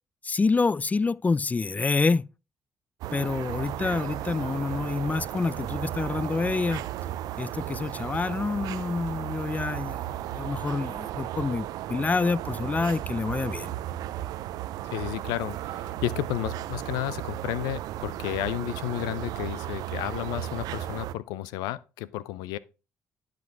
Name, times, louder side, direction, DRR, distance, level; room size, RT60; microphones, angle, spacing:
voice 1, 0.2-2.3 3.1-6.9 7.4-13.7, left 4 dB, 25° left, 0.3 m, -27 dB
sound 1, 3.0-21.1, right 13 dB, 80° right, 0.5 m, -35 dB
voice 2, 14.8-22.6, left 15 dB, 85° left, 0.4 m, -32 dB
10.5 x 6.1 x 3.4 m
supercardioid pair, 55°, 7 cm